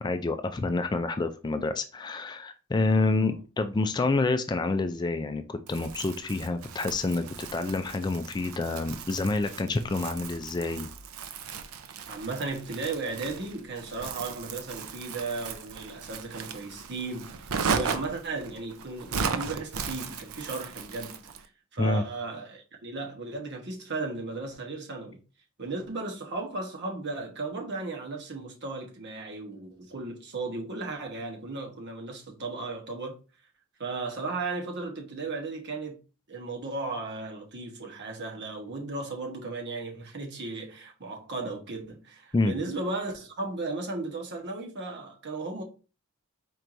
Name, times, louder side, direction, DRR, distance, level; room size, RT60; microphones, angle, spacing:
voice 1, 0.0-10.9 21.8-22.0 42.3-42.6, left 3 dB, 20° left, 0.3 m, -28 dB
Crumpling crinkling, 5.7-21.5, right 6 dB, 85° right, 0.5 m, -37 dB
voice 2, 12.1-21.2 21.7-25.2 25.6-33.2 33.8-36.0 36.3-45.6, right 3 dB, 55° right, 1.1 m, -35 dB
4.5 x 4.5 x 2.6 m
head